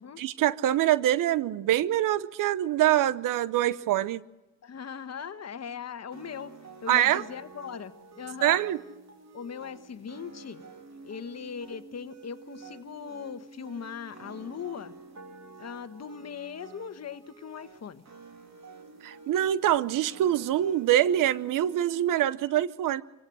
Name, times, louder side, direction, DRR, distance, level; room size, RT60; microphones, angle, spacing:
voice 1, 0.2-4.2 6.9-7.2 8.4-8.8 19.0-23.0, right 12 dB, 80° right, 0.8 m, -24 dB
voice 2, 4.6-6.5 6.8-8.6 9.3-10.6 11.0-14.9 15.6-18.0, left 7 dB, 55° left, 1.4 m, -39 dB
sound 1, 6.1-22.1, right 4 dB, 55° right, 3.5 m, -49 dB
26.0 x 17.0 x 6.2 m
supercardioid pair, 60°, 32 cm